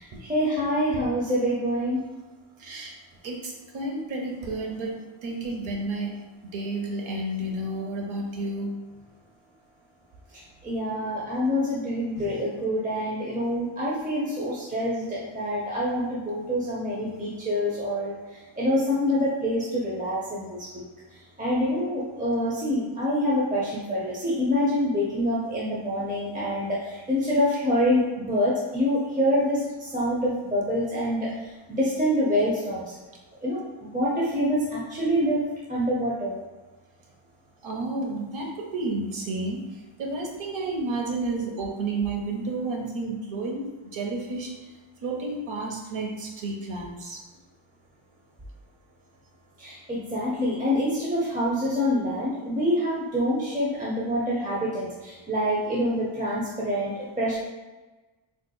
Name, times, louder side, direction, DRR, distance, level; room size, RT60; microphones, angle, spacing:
voice 1, 0.0-2.0 10.6-20.8 21.4-31.3 31.7-32.9 33.4-36.4 49.6-57.4, equal, 15° right, -6 dB, 0.5 m, -26 dB
voice 2, 2.6-3.0 3.2-4.9 5.2-6.1 6.5-8.7 12.2-12.3 37.6-39.6 40.0-43.6 43.9-44.5 45.0-47.2, right 2 dB, 75° right, 0 dB, 0.8 m, -31 dB
3.6 x 2.8 x 2.2 m, 1.2 s
wide cardioid pair, 115°, 49 cm